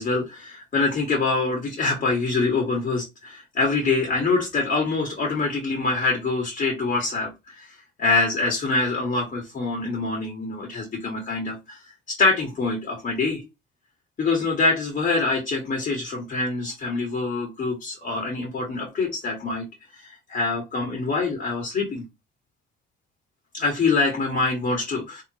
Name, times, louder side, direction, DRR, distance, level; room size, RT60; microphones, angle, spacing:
voice 1, 0.0-7.7 8.0-11.8 12.1-13.4 14.2-19.7 19.9-22.0 23.5-25.2, left 3 dB, 45° left, 0 dB, 1.5 m, -25 dB
3.4 x 3.0 x 2.8 m, 0.23 s
cardioid pair, 90°, 20 cm